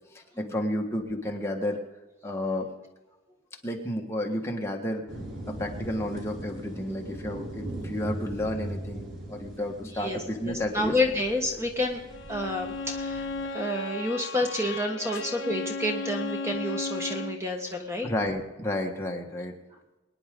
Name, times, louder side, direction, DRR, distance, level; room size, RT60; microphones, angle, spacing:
voice 1, 0.1-1.8 2.2-2.7 3.6-5.0 5.4-11.0 15.1-15.2 18.0-19.5, left 1 dB, 15° left, 0 dB, 1.5 m, -31 dB
sound 1, 5.1-13.5, right 1 dB, 85° right, 3.7 m, -40 dB
voice 2, 10.4-12.0 12.3-18.1, left 1 dB, 15° right, 2 dB, 1.3 m, -29 dB
Bowed string instrument, 12.1-17.5, left 3 dB, 70° left, 0.7 m, -35 dB
23.5 x 10.0 x 3.7 m, 1.1 s
head